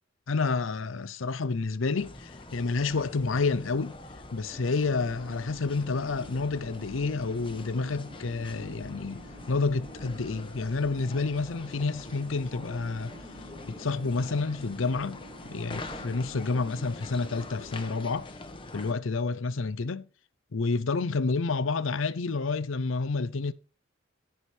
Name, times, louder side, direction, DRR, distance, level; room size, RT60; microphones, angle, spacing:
voice 1, 0.3-4.0 4.3-13.1 13.7-15.2 15.5-18.3 18.7-20.1 20.5-23.5, left 4 dB, 75° left, 0.6 m, -29 dB
sound 1, 1.9-18.9, left 2 dB, 25° left, 1.1 m, -44 dB
sound 2, 4.5-18.2, equal, 70° right, 3.4 m, -50 dB
14.5 x 5.0 x 4.4 m
head